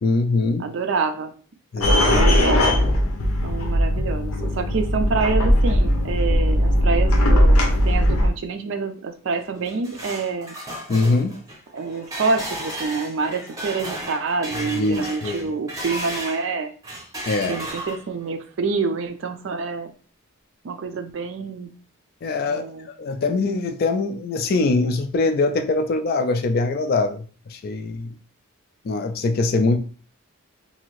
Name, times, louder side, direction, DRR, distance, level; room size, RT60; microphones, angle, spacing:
voice 1, 0.0-0.7 1.7-2.2 10.9-11.4 14.7-15.5 17.3-17.6 22.2-28.2 28.8-29.8, left 3 dB, 45° left, 7 dB, 0.3 m, -23 dB
voice 2, 0.6-1.3 2.0-2.7 3.4-10.5 11.7-16.7 17.5-19.9 20.6-21.7 22.4-22.9, right 4 dB, 60° right, 8 dB, 0.4 m, -27 dB
sound 1, 1.8-8.3, equal, 85° left, 0.6 m, -18 dB
sound 2, 9.4-16.4 16.8-18.2, equal, 15° right, 0.6 m, -34 dB
2.8 x 2.5 x 3.0 m, 0.41 s
head